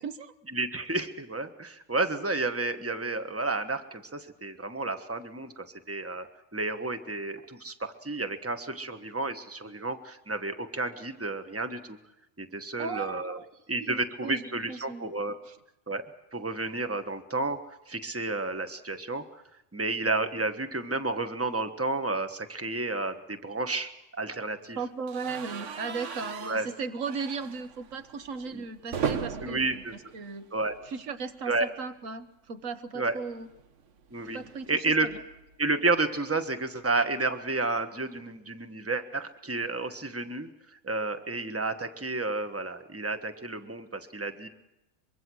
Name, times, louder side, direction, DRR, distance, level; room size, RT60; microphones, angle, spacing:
voice 1, 0.0-0.3 12.8-13.5 13.8-15.1 15.4-15.6 24.7-30.5 30.8-33.5 34.3-35.2, right 5 dB, 85° right, 10 dB, 1.6 m, -37 dB
voice 2, 0.5-6.3 6.5-12.0 12.4-13.4 13.7-15.3 15.9-16.0 16.3-17.6 17.9-19.2 19.7-24.8 26.4-26.7 28.5-28.6 29.4-30.0 30.5-30.7 31.5-31.7 32.9-33.2 34.1-35.1 35.6-40.5 40.8-44.5, right 3 dB, 10° right, 8 dB, 1.3 m, -31 dB
sound 1, 25.1-31.1 31.4-31.6 31.9-32.0 33.2-35.6, right 6 dB, 70° right, 1.4 m, -38 dB
24.5 x 23.5 x 6.3 m, 0.93 s
omnidirectional pair, 1.3 m